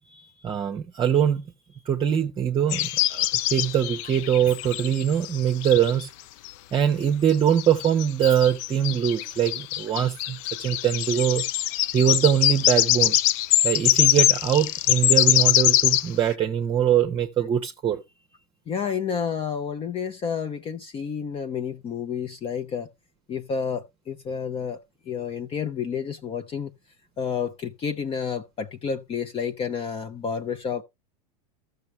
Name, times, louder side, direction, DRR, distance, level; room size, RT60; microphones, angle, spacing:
voice 1, 0.1-1.4 1.8-6.1 6.7-11.4 11.9-13.2 13.6-18.0, right 9 dB, 25° right, 0.9 m, -23 dB
sound 1, 2.7-6.0 6.4-6.5 7.3-16.1, left 14 dB, 55° left, 0.5 m, -23 dB
voice 2, 18.7-22.9 23.3-24.8 25.1-26.7 27.2-30.8, left 6 dB, 25° left, 0.7 m, -30 dB
13.5 x 6.5 x 3.2 m
hypercardioid pair, 115°, 20 cm